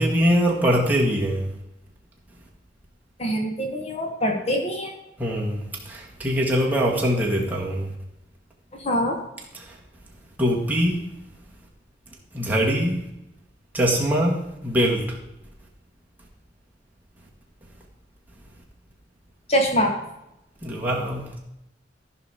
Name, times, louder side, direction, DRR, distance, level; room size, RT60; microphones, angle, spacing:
voice 1, 0.0-1.5 5.2-7.9 9.5-9.8 10.4-11.1 12.3-13.1 13.7-15.2 20.6-21.4, equal, 10° right, -3 dB, 2.1 m, -23 dB
voice 2, 3.2-4.9 8.8-9.2 19.5-19.9, equal, 35° left, 3 dB, 1.3 m, -23 dB
14.0 x 5.4 x 5.0 m, 0.87 s
head